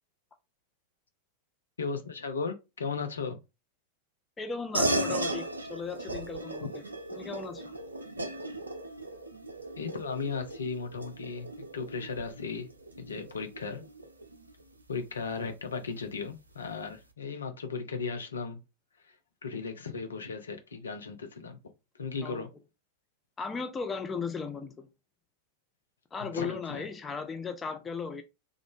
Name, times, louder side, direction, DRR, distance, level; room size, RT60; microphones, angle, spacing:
voice 1, 1.8-3.4 6.6-6.7 9.7-12.7 13.0-13.8 14.9-18.6 19.4-21.6 22.0-22.5 26.2-26.8, left 5 dB, 70° left, 0.6 m, -36 dB
voice 2, 4.4-6.8 7.1-7.7 22.2-22.5 23.4-24.9 26.1-28.2, left 5 dB, 15° left, 0.6 m, -36 dB
sound 1, 4.7-14.6, right 1 dB, 75° right, 0.5 m, -36 dB
3.4 x 2.5 x 3.5 m
figure-of-eight pair, 90°, 0 cm